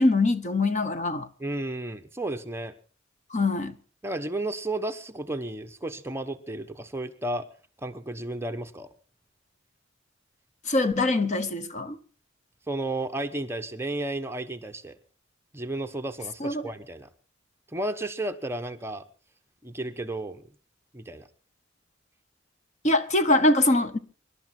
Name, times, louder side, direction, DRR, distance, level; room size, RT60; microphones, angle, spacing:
voice 1, 0.0-1.3 3.3-3.7 10.7-12.0 16.4-16.6 22.8-24.0, left 2 dB, 40° left, 1.1 m, -23 dB
voice 2, 1.4-2.7 4.0-7.5 7.8-8.9 12.7-15.0 15.5-17.1 17.7-19.0 19.6-20.4 20.9-21.3, right 2 dB, 15° right, 1.0 m, -33 dB
24.0 x 12.0 x 4.3 m
head